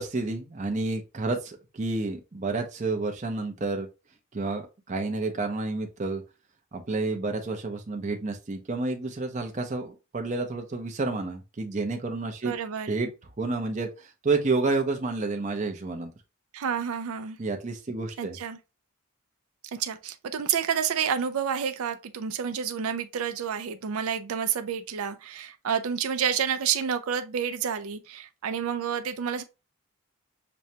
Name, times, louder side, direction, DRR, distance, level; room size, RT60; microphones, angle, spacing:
voice 1, 0.0-3.9 4.3-6.2 6.7-12.5 12.9-13.1 13.4-16.1 17.4-18.4, right 3 dB, 35° right, 0.5 m, -30 dB
voice 2, 12.4-13.0 16.5-17.4 18.2-18.6 19.7-29.4, right 7 dB, 80° right, 0.4 m, -29 dB
6.0 x 2.2 x 2.7 m
head